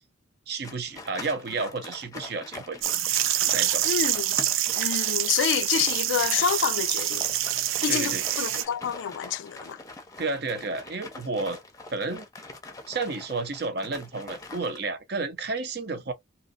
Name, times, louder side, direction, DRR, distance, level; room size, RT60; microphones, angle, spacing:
voice 1, 0.5-2.8 3.5-3.8 7.9-8.4 10.2-11.6 11.9-12.3 12.9-16.1, right 3 dB, 55° right, 0.7 m, -31 dB
sound 1, 0.6-14.8, left 3 dB, 15° left, 0.6 m, -43 dB
sound 2, 2.8-8.6, right 12 dB, 85° right, 0.4 m, -26 dB
voice 2, 3.8-4.4 4.8-7.3 7.8-9.8, left 9 dB, 70° left, 0.3 m, -28 dB
3.1 x 2.8 x 2.5 m
head